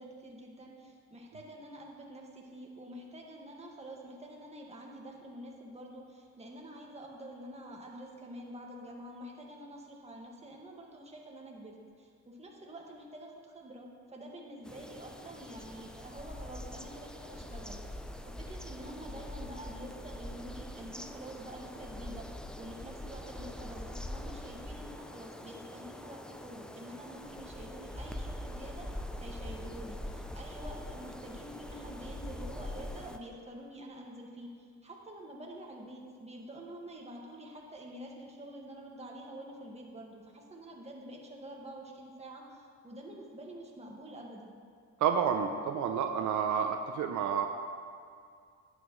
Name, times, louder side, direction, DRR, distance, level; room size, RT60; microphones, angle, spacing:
voice 1, 0.0-22.3 22.6-44.6, right 1 dB, 20° right, -2 dB, 1.8 m, -47 dB
sound 1, 14.6-33.2, left 1 dB, 5° left, 0.5 m, -43 dB
voice 2, 45.0-47.5, right 7 dB, 75° right, 5 dB, 0.7 m, -29 dB
11.5 x 9.2 x 3.2 m, 2.2 s
cardioid pair, 90°, 30 cm